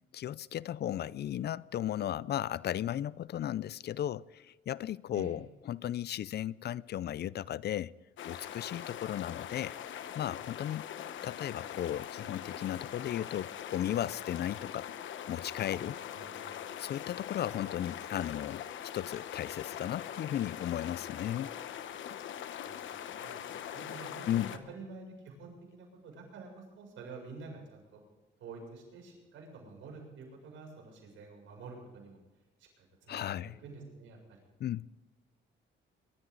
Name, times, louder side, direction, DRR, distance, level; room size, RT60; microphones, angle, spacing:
voice 1, 0.1-7.9 8.2-9.8 10.1-10.9 11.2-14.9 15.3-16.0 16.8-18.6 18.9-21.5 24.3-24.6 33.1-33.6 34.6-34.9, left 11 dB, 55° left, 0.5 m, -35 dB
sound 1, 8.2-24.6, left 10 dB, 75° left, 1.1 m, -42 dB
voice 2, 16.1-16.5 22.6-28.0 28.4-32.2 33.0-33.3 33.6-34.4, right 4 dB, 80° right, 7.1 m, -49 dB
23.5 x 13.0 x 4.0 m
cardioid pair, 90°, 20 cm